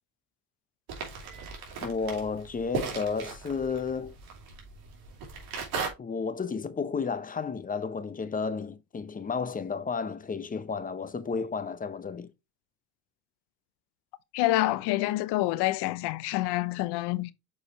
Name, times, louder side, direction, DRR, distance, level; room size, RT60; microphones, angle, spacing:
sound 1, 0.9-5.9, right 5 dB, 60° right, 3.0 m, -37 dB
voice 1, 1.8-4.2 6.0-12.3, left 5 dB, 20° left, 0.8 m, -32 dB
voice 2, 14.3-17.3, left 17 dB, 65° left, 0.9 m, -27 dB
6.6 x 4.9 x 3.0 m
supercardioid pair, 105°, 42 cm